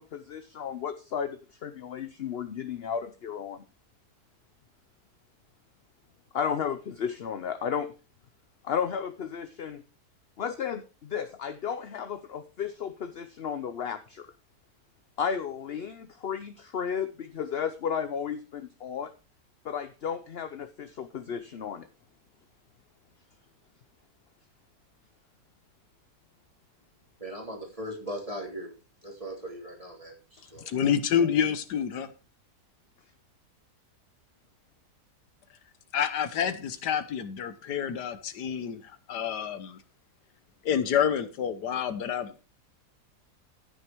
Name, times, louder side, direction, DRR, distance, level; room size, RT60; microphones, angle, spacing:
voice 1, 0.0-3.6 6.3-7.9 8.6-9.8 10.4-14.3 15.2-19.1 19.6-21.9, left 7 dB, 50° left, 11 dB, 0.7 m, -33 dB
voice 2, 27.2-28.7 29.0-30.7, equal, 20° right, 1 dB, 3.4 m, -39 dB
voice 3, 30.7-32.1 35.9-39.8 40.6-42.4, left 8 dB, 85° left, 12 dB, 1.6 m, -28 dB
14.5 x 6.6 x 4.5 m, 0.32 s
omnidirectional pair, 1.7 m